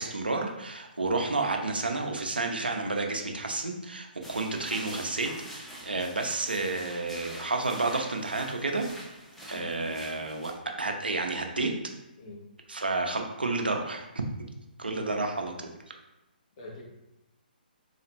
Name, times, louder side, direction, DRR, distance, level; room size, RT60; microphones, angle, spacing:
voice 1, 0.0-8.9 9.5-10.5 10.8-11.7 12.7-14.1 14.8-15.5, right 3 dB, 75° right, 3 dB, 0.6 m, -30 dB
sound 1, 4.2-10.5, equal, 5° left, 0.5 m, -45 dB
voice 2, 9.5-9.8 12.2-12.4 14.8-15.1 16.6-16.8, left 2 dB, 35° left, -2 dB, 1.0 m, -44 dB
3.9 x 2.4 x 3.0 m, 0.96 s
figure-of-eight pair, 135°, 5 cm